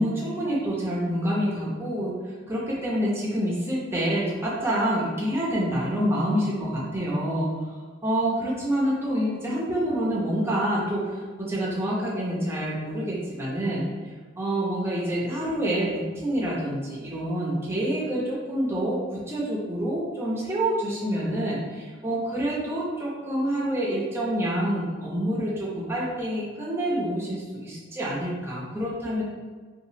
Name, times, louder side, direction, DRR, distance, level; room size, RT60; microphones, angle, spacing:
voice 1, 0.0-7.5 8.0-13.9 14.4-29.2, right 1 dB, 10° right, -6 dB, 0.6 m, -27 dB
2.9 x 2.4 x 2.7 m, 1.5 s
head